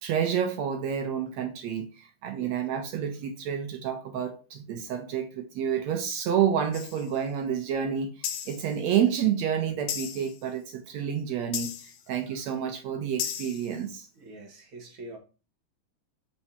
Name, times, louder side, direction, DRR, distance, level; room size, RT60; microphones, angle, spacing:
voice 1, 0.0-14.1, right 8 dB, 75° right, 1.7 m, -29 dB
We are the world - tambourines, 6.7-7.1 8.2-8.7 9.9-10.4 11.5-12.0 13.2-13.7, left 9 dB, 90° left, 2.5 m, -35 dB
voice 2, 14.2-15.2, right 2 dB, 45° right, 1.9 m, -44 dB
7.3 x 4.6 x 4.2 m
omnidirectional pair, 3.7 m